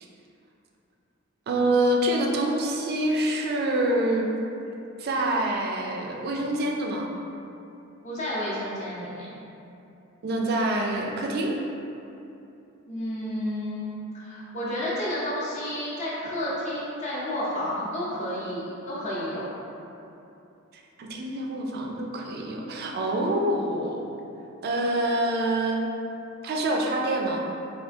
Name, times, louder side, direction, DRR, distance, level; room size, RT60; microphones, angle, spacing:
voice 1, 1.5-4.3 5.0-7.1 10.2-11.6 21.0-24.1 24.6-25.8 26.4-27.4, right 1 dB, 50° right, 1 dB, 0.3 m, -26 dB
voice 2, 8.0-9.3 12.9-19.5, left 1 dB, 35° left, -8 dB, 0.7 m, -31 dB
3.5 x 2.4 x 2.5 m, 2.8 s
head